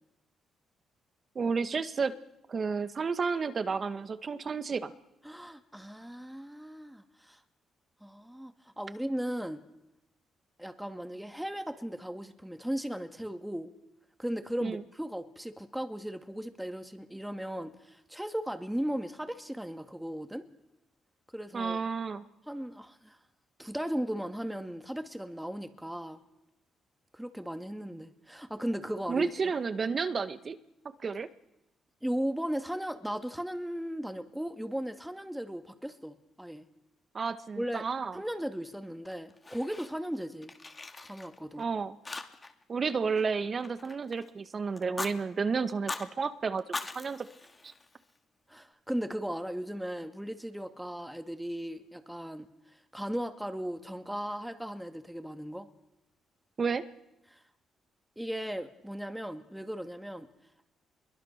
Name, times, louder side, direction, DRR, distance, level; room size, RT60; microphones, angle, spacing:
voice 1, 1.4-2.1 2.5-4.9 14.6-14.8 21.5-22.2 29.1-30.6 31.0-31.3 37.1-38.2 41.6-42.0 42.7-47.3 47.6-47.7 56.6-56.8, right 5 dB, 45° right, 11 dB, 1.7 m, -31 dB
voice 2, 5.2-7.4 8.0-9.6 10.6-13.7 14.2-20.5 21.3-21.8 22.5-23.2 23.6-26.2 27.1-29.5 32.0-36.6 37.6-37.8 38.1-40.5 41.0-41.7 48.5-52.5 52.7-55.7 57.3-57.4 58.2-60.3, equal, 5° right, 7 dB, 2.2 m, -37 dB
Fire, 39.0-40.1 40.4-41.6 42.0-42.6 42.9-44.3 44.8-45.1 45.7-46.1 46.6-48.2, left 3 dB, 30° left, 2.4 m, -41 dB
25.5 x 22.5 x 6.7 m, 0.91 s
supercardioid pair, 60°, 0 cm